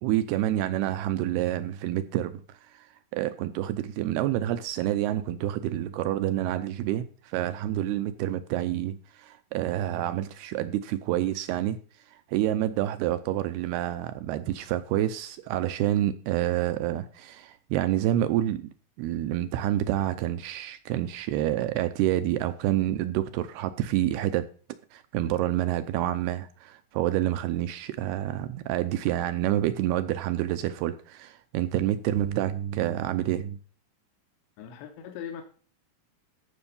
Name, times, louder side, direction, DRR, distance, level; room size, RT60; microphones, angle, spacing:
voice 1, 0.0-18.7 19.0-24.5 24.9-33.6, right 13 dB, 80° right, 2.3 m, -28 dB
voice 2, 34.6-35.4, left 8 dB, 75° left, 3.3 m, -39 dB
14.5 x 6.2 x 5.4 m
omnidirectional pair, 5.1 m